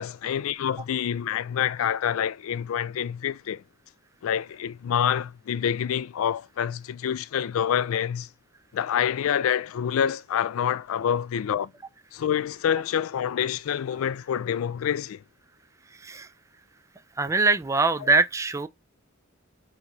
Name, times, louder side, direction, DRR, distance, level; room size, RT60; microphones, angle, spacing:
voice 1, 0.0-3.6 4.2-8.3 8.7-11.7 12.1-15.2 18.0-18.1, left 9 dB, 85° left, 0.3 m, -27 dB
voice 2, 17.2-18.7, right 3 dB, 15° right, 0.4 m, -22 dB
4.6 x 3.0 x 3.2 m
head